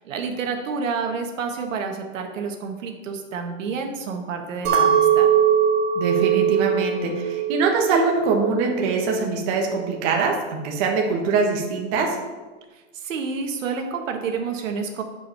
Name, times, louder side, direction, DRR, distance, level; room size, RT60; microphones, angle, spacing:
voice 1, 0.0-5.3 12.9-15.0, right 5 dB, 75° right, 4 dB, 1.4 m, -29 dB
Chink clink, 4.6-9.0 9.4-10.0, right 8 dB, 55° right, 2.0 m, -21 dB
voice 2, 5.9-12.2, right 4 dB, 35° right, 1 dB, 1.3 m, -23 dB
8.5 x 5.1 x 5.7 m, 1.3 s
supercardioid pair, 160°, 39 cm